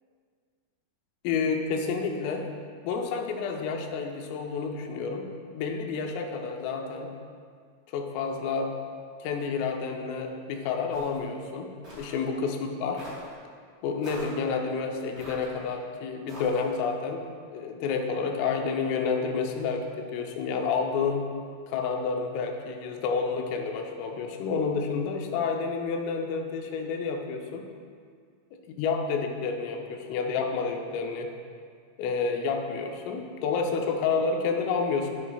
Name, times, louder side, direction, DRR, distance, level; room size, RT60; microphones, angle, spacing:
voice 1, 1.2-2.5 2.8-5.3 5.5-7.1 7.9-8.7 9.2-13.0 13.8-17.3 17.5-21.2 21.7-27.7 28.8-31.3 32.0-35.1, left 5 dB, 90° left, 3 dB, 3.4 m, -29 dB
sound 1, 10.9-11.2 11.8-12.2 13.0-13.3 14.0-14.4 15.2-15.7 16.3-16.8, equal, 30° right, 1.8 m, -43 dB
11.0 x 10.0 x 2.3 m, 2.1 s
omnidirectional pair, 5.7 m